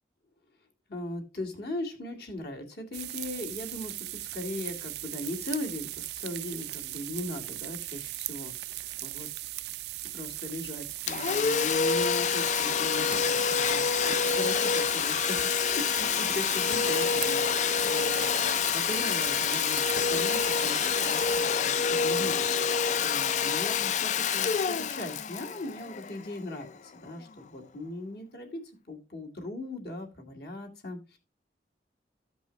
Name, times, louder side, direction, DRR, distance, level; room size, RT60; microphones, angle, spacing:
voice 1, 0.9-9.3 10.0-31.2, left 1 dB, 60° left, 1 dB, 2.3 m, -39 dB
sound 1, 2.9-21.4, right 17 dB, 65° right, 0.3 m, -38 dB
Domestic sounds home sounds, 11.1-26.5, left 6 dB, 45° left, 0.4 m, -27 dB
14.5 x 5.3 x 3.1 m, 0.30 s
head